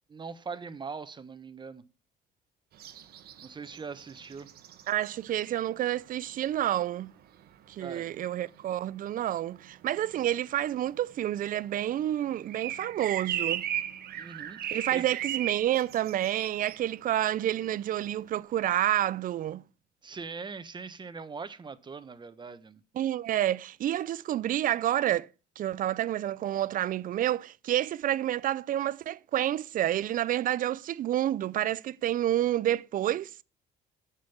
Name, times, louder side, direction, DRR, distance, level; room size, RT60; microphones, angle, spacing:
voice 1, 0.1-1.8 3.4-4.5 7.8-8.1 14.1-15.2 20.0-22.8, right 5 dB, 25° right, 1.2 m, -41 dB
sound 1, 2.7-17.6 18.0-18.1, right 10 dB, 70° right, 1.5 m, -37 dB
voice 2, 4.9-7.1 7.7-13.6 14.7-19.6 23.0-25.3 25.6-33.3, right 12 dB, 55° right, 0.6 m, -29 dB
10.5 x 7.5 x 7.2 m
cardioid pair, 110°, 17 cm